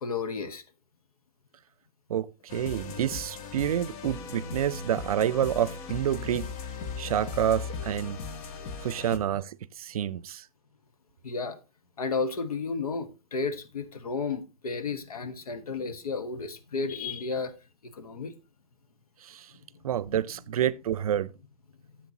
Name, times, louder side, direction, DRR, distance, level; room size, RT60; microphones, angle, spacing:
voice 1, 0.0-0.6 11.2-11.6 12.0-17.5 17.8-18.3, left 4 dB, 85° left, 1.2 m, -32 dB
voice 2, 2.1-6.5 7.0-8.2 8.8-10.5 19.2-19.5 19.8-21.3, right 10 dB, 80° right, 0.5 m, -28 dB
sound 1, 2.5-9.2, left 5 dB, 45° left, 1.4 m, -38 dB
10.5 x 7.6 x 2.8 m
hypercardioid pair, 110°, 18 cm